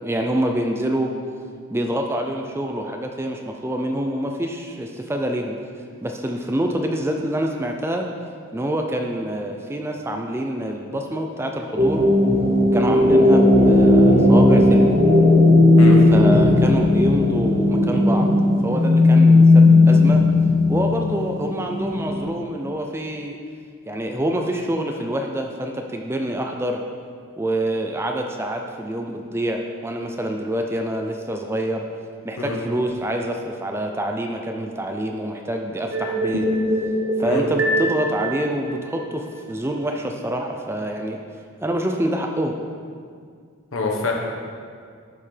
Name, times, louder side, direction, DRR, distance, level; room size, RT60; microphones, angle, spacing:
voice 1, 0.0-1.1 1.7-5.5 6.0-8.1 8.5-12.1 12.7-14.9 16.1-18.3 18.6-20.2 20.7-23.4 23.9-26.8 27.4-31.9 32.2-36.5 37.2-41.2 41.6-42.5, right 1 dB, 10° right, 3 dB, 0.4 m, -26 dB
sound 1, 11.8-22.2, left 2 dB, 40° right, 1.3 m, -15 dB
sound 2, 35.9-39.3, right 1 dB, 70° right, 0.9 m, -24 dB
voice 2, 43.7-44.1, left 3 dB, 70° left, 0 dB, 1.2 m, -25 dB
11.0 x 5.7 x 3.3 m, 2.1 s
head